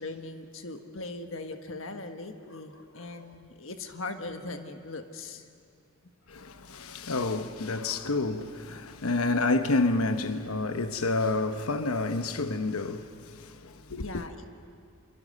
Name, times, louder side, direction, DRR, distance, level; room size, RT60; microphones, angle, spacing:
voice 1, 0.0-5.5 6.3-6.4 14.0-14.5, left 3 dB, 65° left, 1.5 m, -40 dB
voice 2, 6.3-14.1, left 3 dB, 90° left, 1.1 m, -29 dB
26.5 x 23.5 x 6.6 m
head